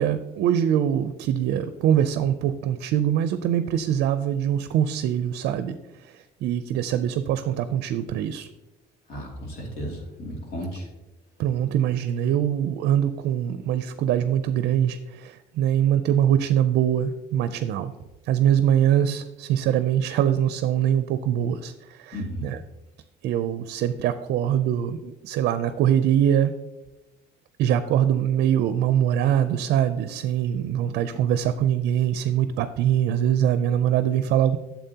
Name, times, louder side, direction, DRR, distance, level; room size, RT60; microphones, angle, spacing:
voice 1, 0.0-5.8 6.0-8.5 11.4-17.9 18.3-22.2 22.4-22.6 23.2-26.5 27.6-34.6, right 10 dB, 75° right, 11 dB, 0.4 m, -23 dB
voice 2, 9.1-10.9 22.1-22.5, equal, 75° left, -1 dB, 2.5 m, -34 dB
8.9 x 7.2 x 2.8 m, 1.0 s
cardioid pair, 110°, 17 cm